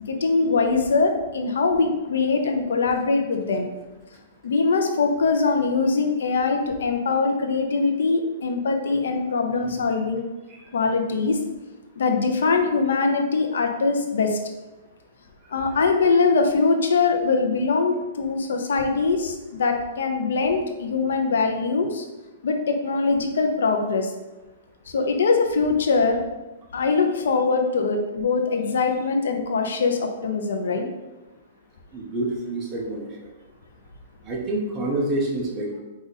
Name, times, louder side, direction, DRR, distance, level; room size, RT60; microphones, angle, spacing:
voice 1, 0.1-3.7 4.4-10.2 10.7-11.4 12.0-14.4 15.5-22.0 22.4-24.1 24.9-26.2 26.7-30.9, left 4 dB, 80° left, 4 dB, 0.7 m, -22 dB
voice 2, 31.9-33.3 34.2-35.8, right 1 dB, 15° right, -1 dB, 0.7 m, -28 dB
4.8 x 2.5 x 4.0 m, 1.1 s
hypercardioid pair, 170°, 0 cm